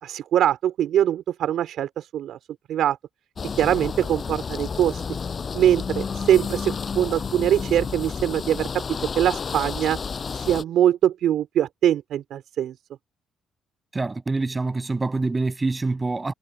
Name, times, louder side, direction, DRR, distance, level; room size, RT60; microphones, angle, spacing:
voice 1, 0.0-2.4 2.7-3.0 3.4-5.0 5.5-8.8 9.1-10.0 10.3-12.8, right 11 dB, 75° right, 4.7 m, -22 dB
sound 1, 3.4-10.6, left 5 dB, 40° left, 6.3 m, -31 dB
voice 2, 13.9-16.3, right 3 dB, 20° right, 7.7 m, -25 dB
cardioid pair, 90°, 0 cm